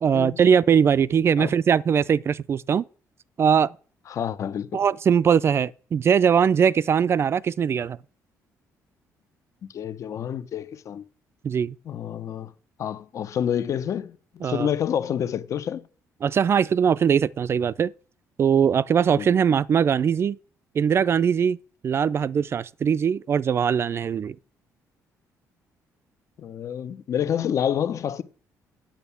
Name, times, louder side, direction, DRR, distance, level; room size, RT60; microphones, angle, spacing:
voice 1, 0.0-2.8 3.4-3.7 4.7-8.0 11.4-11.8 14.4-14.7 16.2-17.9 18.4-20.4 20.7-21.6 21.8-24.4, right 7 dB, 40° right, 0.4 m, -21 dB
voice 2, 4.1-4.8 9.6-11.0 11.8-12.5 12.8-15.9 19.2-19.3 26.4-28.2, left 9 dB, 55° left, 0.8 m, -28 dB
9.0 x 7.0 x 6.9 m
cardioid pair, 100°, 6 cm